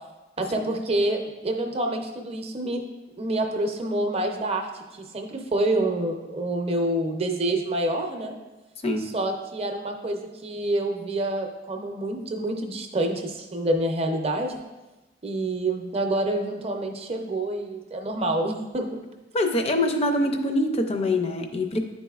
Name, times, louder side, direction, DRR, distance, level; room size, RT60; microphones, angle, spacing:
voice 1, 0.4-2.8 3.2-8.3 9.1-14.6 15.2-19.0, right 1 dB, 35° right, 3 dB, 0.6 m, -27 dB
voice 2, 19.3-21.8, left 1 dB, 35° left, 5 dB, 0.5 m, -24 dB
9.9 x 4.1 x 2.4 m, 1.1 s
head